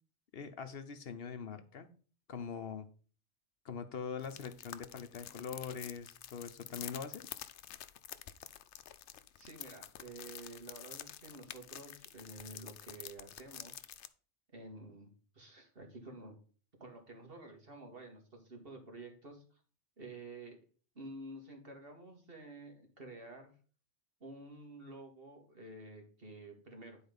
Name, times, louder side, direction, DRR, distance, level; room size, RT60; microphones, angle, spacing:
voice 1, 0.3-1.9 2.3-2.9 3.6-7.4, left 6 dB, 60° left, 0.9 m, -43 dB
sound 1, 4.2-14.1, left 11 dB, 90° left, 0.9 m, -49 dB
voice 2, 9.4-13.9 14.5-16.3 16.8-19.6 20.0-20.6 21.0-23.5 24.2-27.0, right 2 dB, 60° right, 2.2 m, -50 dB
9.9 x 4.3 x 5.3 m
omnidirectional pair, 1.1 m